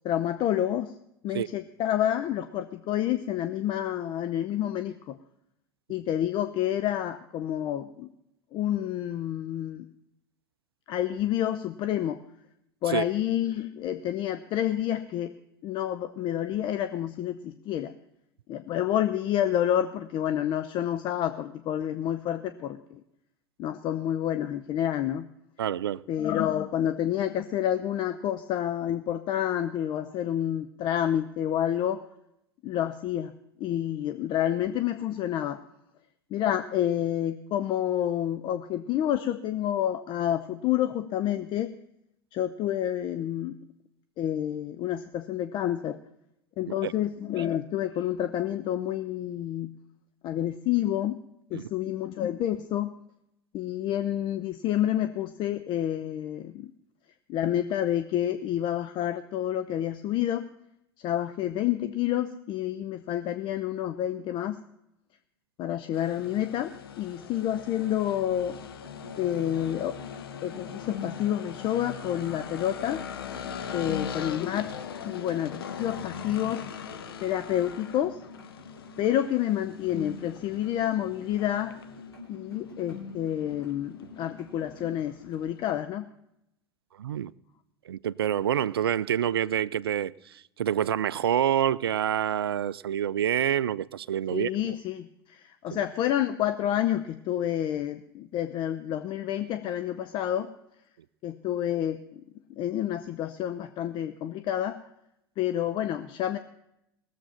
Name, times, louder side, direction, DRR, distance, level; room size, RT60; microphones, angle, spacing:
voice 1, 0.0-0.9 1.2-5.2 5.9-8.1 8.5-9.9 10.9-12.2 12.8-15.3 15.6-17.9 18.5-23.0 23.6-25.3 26.1-32.0 32.6-33.3 33.6-35.6 36.3-41.7 42.3-43.6 44.2-46.0 46.6-49.7 50.2-51.2 51.5-52.9 53.5-56.7 57.3-60.4 61.0-64.6 65.6-68.6 69.2-70.0 70.4-73.1 73.7-74.7 75.0-76.6 77.2-78.2 79.0-81.8 82.3-86.1 94.3-100.5 101.2-102.2 102.6-104.8 105.4-106.4, left 11 dB, 40° left, 0.6 m, -29 dB
voice 2, 25.6-26.0 46.7-46.9 51.5-51.7 87.0-87.3 87.9-94.7 95.7-95.8, right 10 dB, 70° right, 0.4 m, -27 dB
sound 1, 65.9-85.8, left 8 dB, 70° left, 1.0 m, -42 dB
sound 2, 68.1-84.9, left 4 dB, 85° left, 3.7 m, -45 dB
19.0 x 7.5 x 5.6 m
figure-of-eight pair, 80°, 13 cm